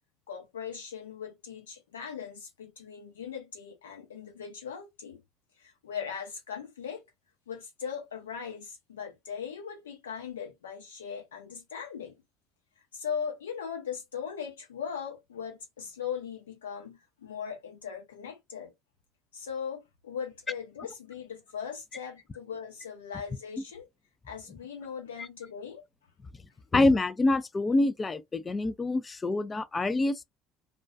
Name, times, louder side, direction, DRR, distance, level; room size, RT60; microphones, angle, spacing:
voice 1, 0.3-5.2 5.6-7.0 7.5-12.2 12.8-18.7 19.3-23.9 24.2-25.8, left 7 dB, 80° left, 0.8 m, -39 dB
voice 2, 26.7-30.2, left 2 dB, 25° left, 0.4 m, -26 dB
2.3 x 2.2 x 2.5 m
hypercardioid pair, 60°, 0 cm